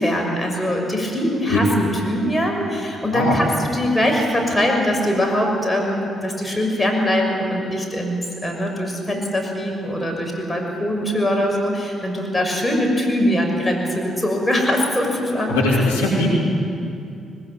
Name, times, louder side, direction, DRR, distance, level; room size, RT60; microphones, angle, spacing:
voice 1, 0.0-15.8 16.2-16.3, equal, 15° left, 1 dB, 6.4 m, -22 dB
voice 2, 15.5-16.3, left 2 dB, 85° left, -5 dB, 3.5 m, -19 dB
21.0 x 20.5 x 7.9 m, 2.6 s
hypercardioid pair, 45°, 0 cm